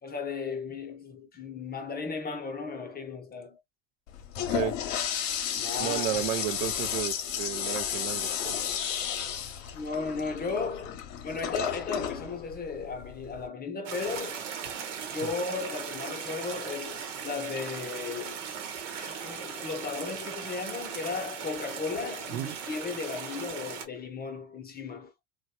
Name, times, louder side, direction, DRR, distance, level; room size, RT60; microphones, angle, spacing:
voice 1, 0.0-3.6 5.6-6.3 9.7-14.4 15.1-18.4 18.9-25.1, left 4 dB, 25° left, 0.8 m, -35 dB
Toilet flush, 4.1-13.5, left 9 dB, 60° left, 0.8 m, -33 dB
voice 2, 5.8-8.6 22.3-22.6, right 13 dB, 55° right, 0.6 m, -32 dB
sound 1, 13.9-23.9, right 7 dB, 75° right, 1.0 m, -38 dB
3.0 x 2.3 x 2.7 m
hypercardioid pair, 75°, 36 cm